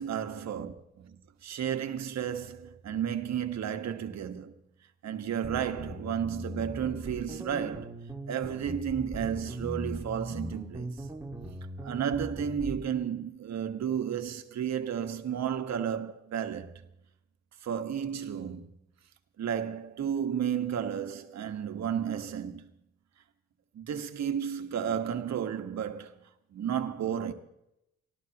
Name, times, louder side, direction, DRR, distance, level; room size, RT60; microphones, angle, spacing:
voice 1, 0.0-4.5 5.0-7.9 8.3-11.1 11.8-16.8 17.6-18.7 19.4-22.7 23.7-26.2 26.5-27.3, right 8 dB, 60° right, 1.5 m, -32 dB
sound 1, 5.4-12.8, right 1 dB, 10° right, 1.9 m, -39 dB
30.0 x 13.0 x 3.0 m
cardioid pair, 90°, 30 cm